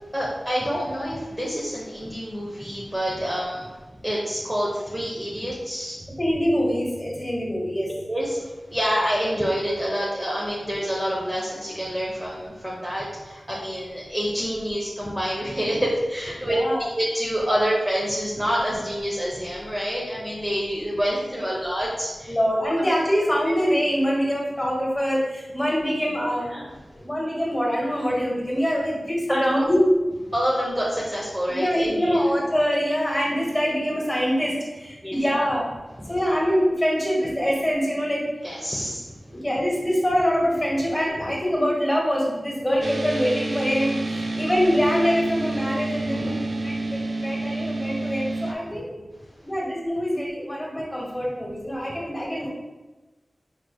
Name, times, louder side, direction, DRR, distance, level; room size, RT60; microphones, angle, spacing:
voice 1, 0.1-3.7 4.0-6.0 8.1-22.4 22.8-22.9 26.5-26.7 29.3-29.6 30.3-32.3 35.0-35.4 36.0-36.1 38.4-39.1 46.0-46.7, equal, 10° right, -5 dB, 0.6 m, -27 dB
voice 2, 6.2-7.9 16.4-16.9 21.5-21.6 22.3-26.5 27.0-29.9 31.5-35.7 36.1-38.2 39.3-46.9 47.2-48.9 49.4-52.5, equal, 15° left, -4 dB, 1.3 m, -24 dB
sound 1, 42.8-48.5, right 2 dB, 60° right, 0.3 m, -29 dB
4.7 x 3.1 x 2.2 m, 1.1 s
wide cardioid pair, 70°, 0 cm